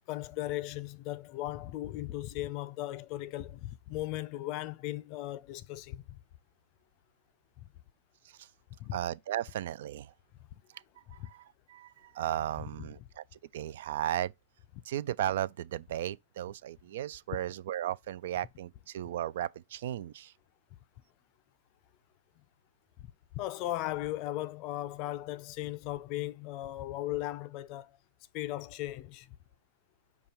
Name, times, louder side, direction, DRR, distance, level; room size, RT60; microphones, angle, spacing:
voice 1, 0.1-6.2 8.8-9.0 11.2-11.3 12.8-12.9 23.0-28.0 28.3-29.4, left 15 dB, 45° left, 0.4 m, -37 dB
voice 2, 8.9-10.1 11.2-13.2 13.5-14.3 14.9-20.3, right 12 dB, 65° right, 0.3 m, -35 dB
5.3 x 2.3 x 4.3 m
hypercardioid pair, 125°, 0 cm